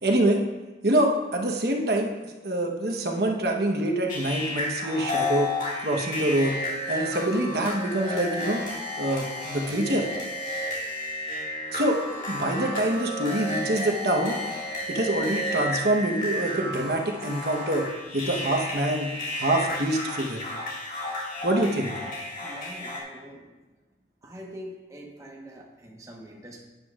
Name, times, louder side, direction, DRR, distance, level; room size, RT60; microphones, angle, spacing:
voice 1, 0.0-0.4 0.8-2.1 2.4-5.5 5.8-6.6 6.9-8.6 9.0-10.1 11.7-12.0 12.3-14.3 14.9-17.8 18.1-20.4 21.4-21.9, right 1 dB, 60° right, 1 dB, 1.1 m, -25 dB
sound 1, 4.1-23.0, left 1 dB, 45° left, 2.1 m, -32 dB
voice 2, 22.4-23.5 24.2-26.6, equal, 20° right, -1 dB, 1.2 m, -44 dB
12.0 x 9.8 x 2.5 m, 1.2 s
head